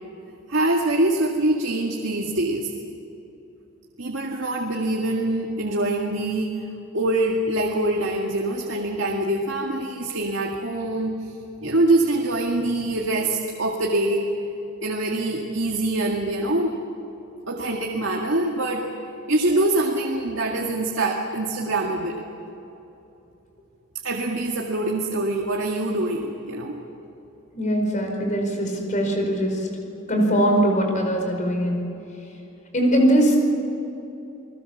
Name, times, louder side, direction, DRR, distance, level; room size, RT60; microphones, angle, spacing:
voice 1, 0.5-2.7 4.0-6.6 6.9-11.3 11.6-14.3 14.8-16.7 17.5-18.9 19.3-22.3 24.0-26.8, right 2 dB, 65° right, 0 dB, 2.2 m, -24 dB
voice 2, 27.5-29.7 30.1-31.8 32.7-33.4, equal, 40° left, 2 dB, 5.1 m, -21 dB
30.0 x 20.0 x 7.3 m, 2.9 s
head